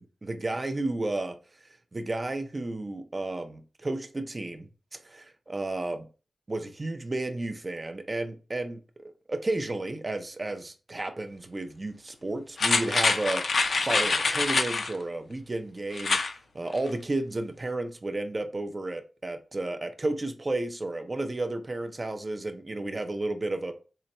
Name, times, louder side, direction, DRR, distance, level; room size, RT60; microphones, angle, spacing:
voice 1, 0.2-1.4 1.9-4.7 5.0-6.1 6.5-13.4 13.8-16.2 16.5-23.7, right 2 dB, 25° right, 0.5 m, -32 dB
sound 1, 12.6-14.9 15.9-16.3 16.7-16.8, left 3 dB, 50° left, 0.4 m, -25 dB
3.8 x 2.2 x 4.1 m
wide cardioid pair, 125°, 0 cm